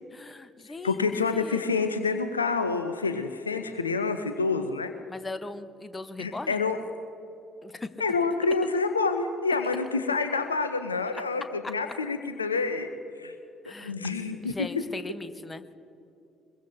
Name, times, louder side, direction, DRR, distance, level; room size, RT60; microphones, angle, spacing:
voice 1, 0.1-1.7 5.1-6.6 7.6-7.9 11.1-11.2 13.6-13.9 14.4-15.6, left 3 dB, 20° left, 11 dB, 0.9 m, -39 dB
voice 2, 0.8-4.9 6.2-6.8 8.0-12.9 13.2-13.3 13.8-14.6, left 4 dB, 85° left, 9 dB, 0.6 m, -27 dB
24.0 x 22.0 x 2.7 m, 2.6 s
figure-of-eight pair, 50°, 0 cm